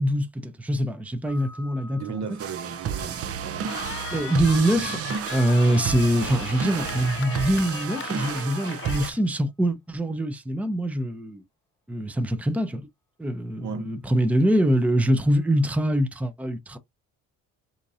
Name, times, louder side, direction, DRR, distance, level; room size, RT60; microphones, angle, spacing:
voice 1, 0.0-2.2 4.1-5.0 5.3-11.4 11.9-12.9 13.2-16.8, right 1 dB, 5° right, 0.7 m, -24 dB
sound 1, 1.3-2.9 4.9-9.2 15.2-16.0, left 1 dB, 10° left, 1.8 m, -49 dB
voice 2, 1.9-3.7 13.6-14.0, right 6 dB, 70° right, 1.1 m, -35 dB
sound 2, 2.4-9.1, right 7 dB, 50° right, 0.6 m, -32 dB
Cheering, 3.7-9.2, left 10 dB, 40° left, 0.4 m, -38 dB
4.4 x 2.7 x 2.6 m
cardioid pair, 90°, 30 cm